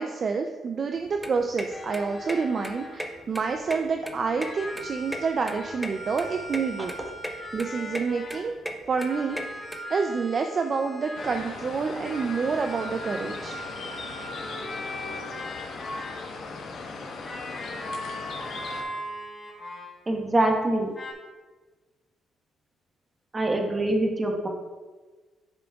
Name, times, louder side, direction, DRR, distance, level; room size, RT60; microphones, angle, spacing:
voice 1, 0.0-6.9 7.5-8.5 8.9-9.4 9.9-13.6, right 5 dB, 45° right, 5 dB, 0.4 m, -28 dB
sound 1, 1.0-9.8, equal, 5° right, 0.7 m, -37 dB
sound 2, 1.7-3.2 4.3-8.6 9.0-11.7 12.0-16.4 17.2-20.1 20.9-21.1, left 1 dB, 30° left, 1.7 m, -39 dB
sound 3, 11.1-18.8, left 3 dB, 70° left, 1.0 m, -38 dB
voice 2, 20.1-20.9 23.3-24.5, right 1 dB, 25° right, 2 dB, 1.2 m, -24 dB
10.5 x 5.0 x 2.3 m, 1.3 s
cardioid pair, 90°, 0 cm